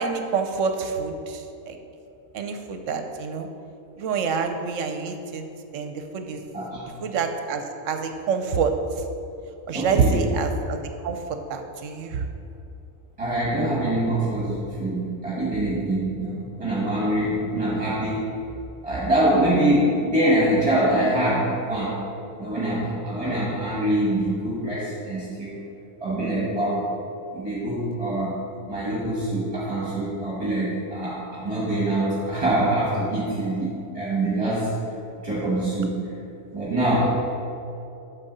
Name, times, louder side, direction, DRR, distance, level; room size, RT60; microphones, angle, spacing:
voice 1, 0.0-1.8 2.3-3.5 4.0-5.5 5.7-6.4 7.0-8.7 9.7-10.8 11.0-11.2 11.5-12.2, right 5 dB, 70° right, 6 dB, 1.0 m, -26 dB
voice 2, 6.5-6.9 9.7-10.3 13.2-18.3 18.8-22.0 22.4-25.6 26.0-26.9 27.3-28.4 28.7-34.7 35.2-36.1 36.5-37.1, right 1 dB, 25° right, -8 dB, 1.6 m, -24 dB
9.0 x 6.1 x 4.0 m, 2.7 s
omnidirectional pair, 1.4 m